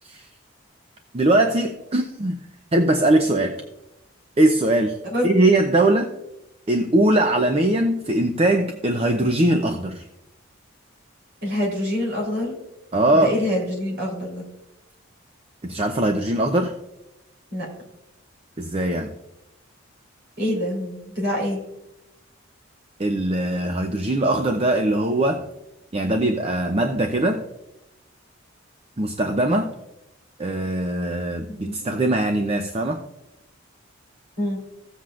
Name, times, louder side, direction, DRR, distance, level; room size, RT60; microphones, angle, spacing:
voice 1, 1.1-2.4 2.7-3.6 4.4-5.0 5.2-6.1 6.7-10.0 12.9-13.4 15.6-16.7 18.6-19.1 23.0-25.4 25.9-27.4 29.0-29.7 30.4-33.0, right 1 dB, 30° right, 4 dB, 0.5 m, -21 dB
voice 2, 11.4-12.6 13.2-14.4 17.5-17.7 20.4-21.6 31.6-31.7 34.4-34.6, left 1 dB, 50° right, -1 dB, 3.9 m, -25 dB
15.5 x 7.6 x 2.5 m, 0.89 s
head